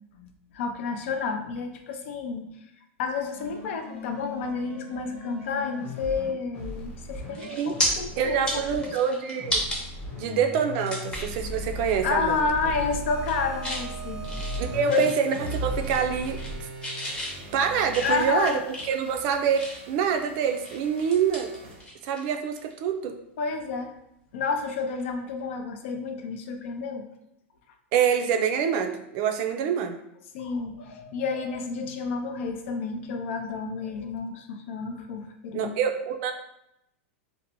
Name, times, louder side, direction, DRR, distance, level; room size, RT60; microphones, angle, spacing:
voice 1, 0.2-2.5 3.0-9.2 12.0-14.2 14.9-15.1 18.0-18.6 23.4-23.9 24.3-27.0 30.3-35.7, left 4 dB, 70° left, 5 dB, 0.4 m, -30 dB
sound 1, 3.3-8.9 9.4-15.1 15.3-16.6, equal, 40° left, 0.9 m, -37 dB
sound 2, 6.8-7.0 7.3-7.9 8.3-9.8 10.3-10.4 10.9-11.4 11.8-12.0 12.3-12.7 13.1-13.8 14.2-15.6 15.8-16.5 16.8-20.0 20.4-22.2 22.5-22.7 24.6-24.8, left 1 dB, 15° left, 0.7 m, -33 dB
voice 2, 7.4-7.7 8.2-9.6 10.2-12.4 14.6-16.7 17.5-18.6 18.9-19.6 19.9-21.5 22.0-23.1 27.9-30.0 35.5-36.3, right 7 dB, 50° right, 5 dB, 0.4 m, -26 dB
sound 3, 13.0-21.9, right 4 dB, 85° right, 0.7 m, -43 dB
2.6 x 2.0 x 2.9 m, 0.81 s
supercardioid pair, 135°, 7 cm